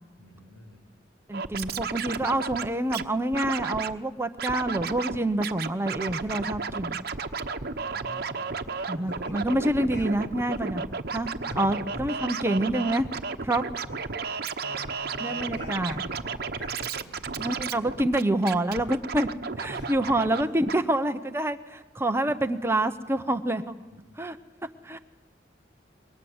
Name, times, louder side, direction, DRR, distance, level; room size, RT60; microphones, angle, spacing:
voice 1, 0.2-0.8 7.6-8.4 8.9-9.5 9.9-10.6 11.5-12.1 13.8-14.0 14.6-17.8 19.7-20.1 20.4-20.6 22.3-22.4 23.9-24.1, equal, 70° left, 4 dB, 6.0 m, -46 dB
voice 2, 1.3-7.0 8.9-11.3 11.6-13.1 13.4-13.6 15.2-16.0 17.4-19.3 19.6-23.8 24.2-24.4 24.8-25.0, right 1 dB, 15° right, 8 dB, 0.9 m, -27 dB
Scratching (performance technique), 1.3-3.0 3.3-3.9 4.4-5.2 5.4-20.4 20.7-20.8, right 5 dB, 60° right, 1.1 m, -33 dB
29.0 x 23.0 x 8.0 m, 1.2 s
head